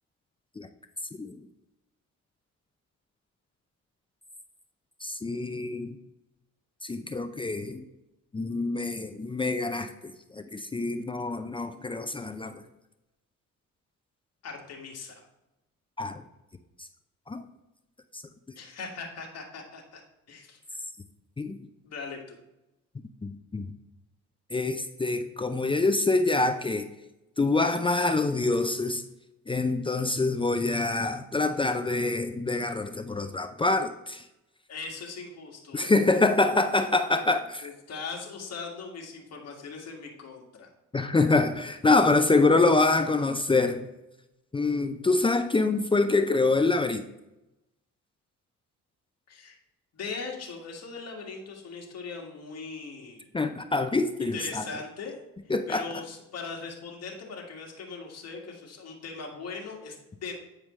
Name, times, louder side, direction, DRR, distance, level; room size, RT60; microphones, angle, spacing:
voice 1, 5.0-6.0 6.8-7.8 8.3-12.6 16.0-16.2 17.3-17.4 18.1-18.2 21.4-21.6 23.2-23.7 24.5-26.9 27.4-29.0 29.5-34.2 35.7-37.7 40.9-43.9 44.5-47.0 53.3-54.6 55.5-55.8, left 3 dB, 15° left, 8 dB, 0.5 m, -25 dB
voice 2, 14.4-15.1 18.6-20.0 20.3-20.6 21.8-22.4 34.7-35.9 37.6-40.7 49.3-49.6 49.9-53.2 54.2-55.2 55.7-60.4, left 4 dB, 55° left, 0 dB, 1.9 m, -40 dB
8.9 x 4.8 x 3.1 m, 0.94 s
cardioid pair, 90°, 30 cm